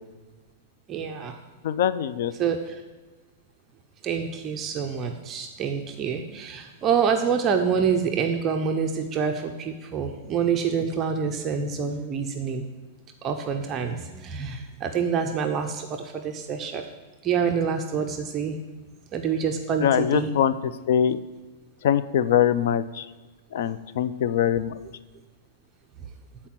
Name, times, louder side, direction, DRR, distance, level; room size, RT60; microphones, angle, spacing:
voice 1, 0.9-1.4 2.4-2.8 4.0-12.7 13.2-16.9 17.2-18.6 19.1-20.3, right 6 dB, 20° right, 4 dB, 0.5 m, -27 dB
voice 2, 1.6-2.3 19.8-20.5 20.9-21.2 21.8-23.1 23.5-24.8, left 9 dB, 60° left, 14 dB, 0.4 m, -22 dB
8.9 x 4.3 x 5.9 m, 1.2 s
supercardioid pair, 160°, 0 cm